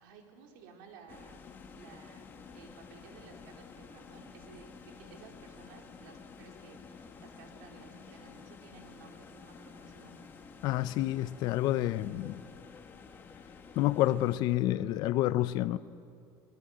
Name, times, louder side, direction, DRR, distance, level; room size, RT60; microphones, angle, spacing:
voice 1, 0.0-2.3 2.5-10.3, right 5 dB, 75° right, 4.1 m, -55 dB
sound 1, 1.1-14.4, left 5 dB, 20° left, 1.4 m, -51 dB
voice 2, 10.6-12.4 13.8-15.8, left 14 dB, 45° left, 0.6 m, -28 dB
25.0 x 21.0 x 9.0 m
cardioid pair, 175°, 10 cm